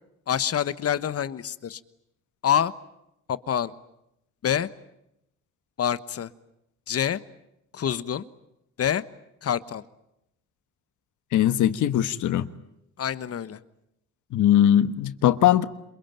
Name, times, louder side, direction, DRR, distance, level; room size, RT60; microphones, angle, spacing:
voice 1, 0.3-1.8 2.4-2.7 3.3-3.7 4.4-4.7 5.8-6.3 6.9-7.2 7.7-8.2 8.8-9.0 9.4-9.8 13.0-13.6, left 9 dB, 50° left, 1.3 m, -26 dB
voice 2, 11.3-12.5 14.3-15.6, left 11 dB, 80° left, 1.4 m, -20 dB
28.0 x 23.0 x 9.1 m
cardioid pair, 90°, 30 cm